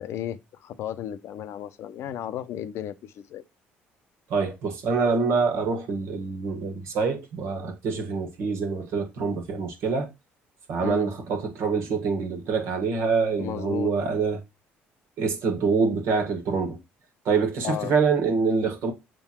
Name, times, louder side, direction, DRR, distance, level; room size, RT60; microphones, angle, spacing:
voice 1, 0.0-3.4 10.8-11.1 13.4-13.9 17.6-17.9, left 10 dB, 65° left, 0.6 m, -34 dB
voice 2, 4.3-10.1 10.7-14.4 15.2-16.8 17.3-18.9, right 5 dB, 70° right, 1.8 m, -25 dB
6.8 x 3.8 x 4.3 m
supercardioid pair, 75°, 5 cm